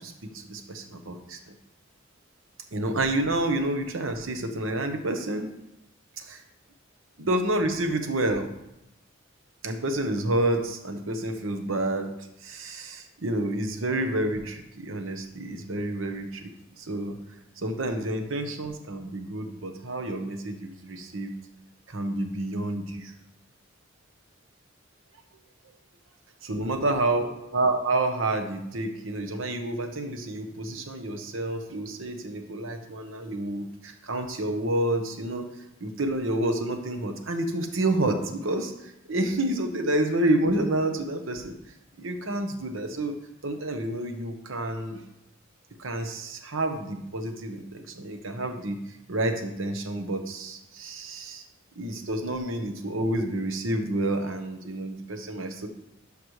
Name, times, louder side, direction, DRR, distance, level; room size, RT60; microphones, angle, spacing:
voice 1, 0.0-1.6 2.7-5.5 6.2-6.4 7.2-8.5 9.6-12.1 12.4-16.5 16.8-17.2 17.6-21.3 21.9-23.1 26.4-27.3 27.5-35.5 35.8-41.6 42.0-43.1 43.4-45.0 45.8-48.8 49.1-51.4 51.8-55.7, right 1 dB, 80° right, 6 dB, 1.0 m, -29 dB
11.5 x 5.2 x 3.2 m, 0.83 s
head